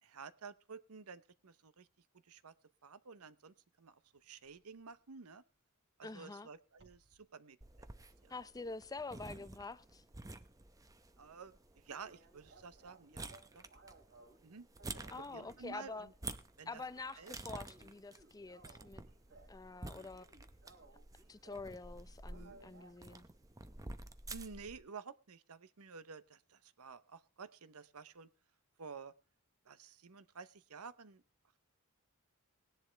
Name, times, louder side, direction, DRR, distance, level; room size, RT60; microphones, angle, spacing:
voice 1, 0.0-1.9 2.2-2.5 2.8-5.4 6.0-7.6 8.2-8.3 11.2-13.3 13.5-13.6 14.4-14.7 14.9-15.0 15.3-16.1 16.6-16.8 17.2-17.6 22.3-22.8 24.3-28.3 28.8-29.1 29.6-31.2, right 5 dB, 75° right, 0.8 m, -52 dB
sound 1, 4.4-4.6 6.7-7.2 7.6-9.8 10.0-10.2 10.6-10.7 11.0-11.1 11.3-11.4 11.9-14.4 14.8-16.5 16.9-17.2 17.5-19.6 19.9-21.7 22.2-23.2, right 3 dB, 55° right, 3.0 m, -62 dB
voice 2, 6.0-6.5 8.3-10.0 15.1-16.1 16.7-19.0 19.5-20.3 21.3-23.3, left 3 dB, 15° left, 0.5 m, -47 dB
sound 2, 7.6-24.8, right 2 dB, 15° right, 0.8 m, -51 dB
18.5 x 10.5 x 3.3 m
head